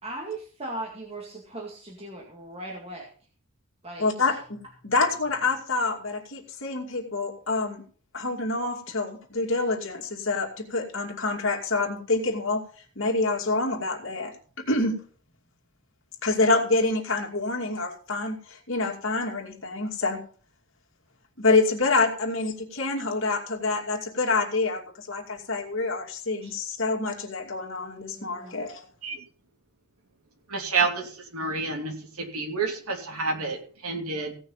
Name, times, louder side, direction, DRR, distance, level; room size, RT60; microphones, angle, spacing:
voice 1, 0.0-3.1 3.8-4.4 26.4-26.5 28.1-28.6, right 2 dB, 25° right, -1 dB, 2.1 m, -38 dB
voice 2, 4.0-7.8 8.1-12.6 13.0-15.0 16.2-20.2 21.4-28.9, left 3 dB, 60° left, 1 dB, 2.5 m, -27 dB
voice 3, 30.5-34.3, right 4 dB, 80° right, 3 dB, 2.9 m, -29 dB
16.5 x 6.2 x 5.6 m, 0.43 s
head